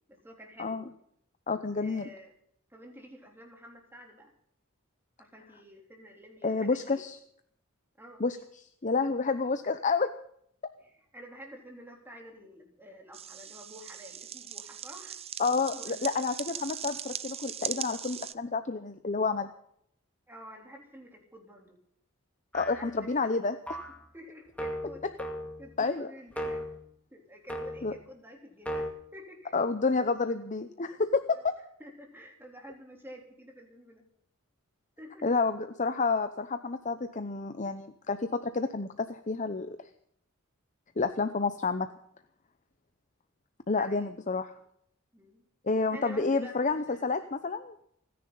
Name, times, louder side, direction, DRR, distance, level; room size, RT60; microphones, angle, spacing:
voice 1, 0.1-0.9 1.8-2.3 2.7-4.3 5.2-7.0 8.0-8.2 10.8-15.2 15.7-16.0 20.3-21.8 22.7-23.2 24.1-26.7 27.1-29.5 31.3-31.4 31.8-34.0 35.0-35.2 43.7-44.1 45.1-45.4 45.9-46.5 46.9-47.3, equal, 10° right, 1 dB, 3.4 m, -50 dB
voice 2, 1.5-2.1 6.4-7.1 8.2-8.4 8.8-10.1 15.4-19.5 22.5-23.8 25.8-26.1 27.8-27.9 29.5-31.6 35.2-39.7 41.0-41.9 43.7-44.5 45.6-47.8, left 4 dB, 35° left, 9 dB, 0.8 m, -29 dB
sound 1, 13.1-18.3, right 9 dB, 30° right, 0.6 m, -39 dB
sound 2, 22.5-23.0 23.7-24.0 24.6-25.7 26.3-26.8 27.5-28.0 28.7-28.9, equal, 5° left, 2.2 m, -36 dB
29.5 x 10.5 x 4.0 m, 0.69 s
head